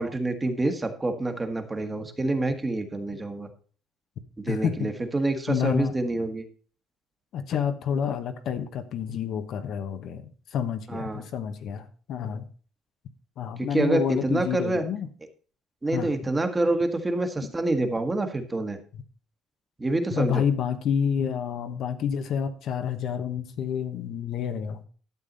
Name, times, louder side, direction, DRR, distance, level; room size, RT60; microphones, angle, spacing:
voice 1, 0.0-3.5 4.4-6.4 10.9-11.3 13.6-14.8 15.8-18.8 19.8-20.4, right 2 dB, 15° right, 6 dB, 1.5 m, -27 dB
voice 2, 4.5-4.9 5.5-5.9 7.3-12.4 13.4-15.1 15.9-16.1 20.1-24.8, left 8 dB, 55° left, 9 dB, 1.2 m, -29 dB
12.0 x 7.5 x 4.1 m, 0.41 s
cardioid pair, 140°, 0 cm